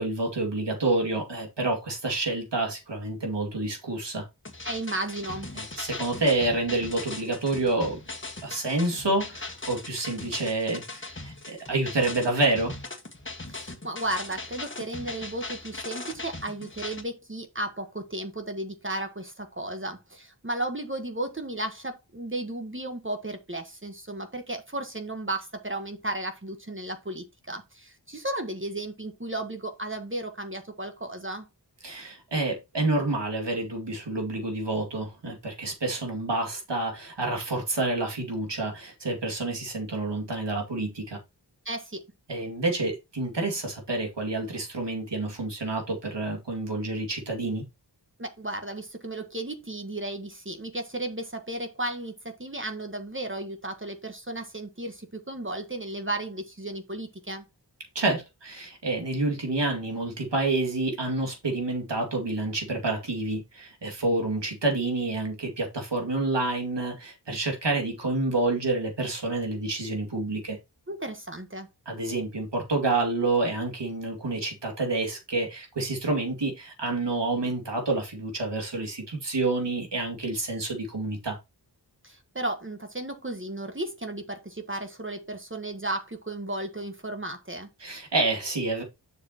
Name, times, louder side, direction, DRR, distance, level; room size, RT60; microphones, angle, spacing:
voice 1, 0.0-4.3 5.6-8.0 8.4-12.7 31.8-41.2 42.3-47.6 57.9-70.6 71.9-81.4 87.8-88.8, right 2 dB, 75° right, 2.3 m, -28 dB
sound 1, 4.4-17.0, left 3 dB, 30° left, 1.5 m, -39 dB
voice 2, 4.6-5.5 13.5-31.5 41.6-42.1 48.2-57.4 70.9-71.7 82.0-87.7, right 1 dB, 30° right, 1.4 m, -34 dB
8.0 x 6.9 x 2.9 m
wide cardioid pair, 55°, 42 cm